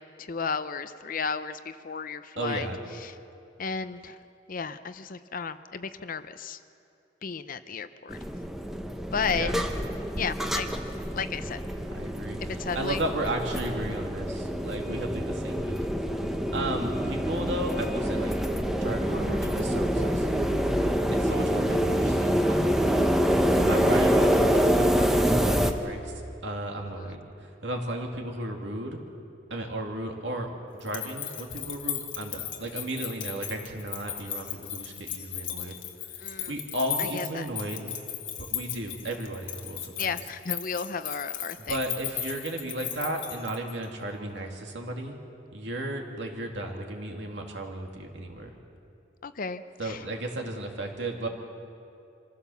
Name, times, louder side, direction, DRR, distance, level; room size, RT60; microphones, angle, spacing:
voice 1, 0.2-2.7 3.0-3.2 3.6-4.2 4.5-6.6 7.2-8.2 9.1-9.5 10.1-10.7 11.1-11.6 12.6-13.0 27.0-27.2 36.2-36.5 37.0-37.5 40.0-41.8 49.2-50.0, left 5 dB, 45° left, 12 dB, 0.6 m, -33 dB
voice 2, 2.4-2.8 9.3-9.5 11.9-16.0 16.5-18.3 18.8-20.5 21.1-23.0 23.5-26.1 26.4-29.0 29.5-30.5 30.8-35.8 36.1-37.9 38.4-40.1 41.7-45.1 45.5-48.5 49.8-51.3, right 1 dB, 65° right, 2 dB, 2.4 m, -34 dB
sound 1, 8.1-25.7, equal, ahead, 0.9 m, -26 dB
sound 2, 30.8-43.8, left 10 dB, 85° left, 1.5 m, -36 dB
25.0 x 15.5 x 7.1 m, 2.6 s
head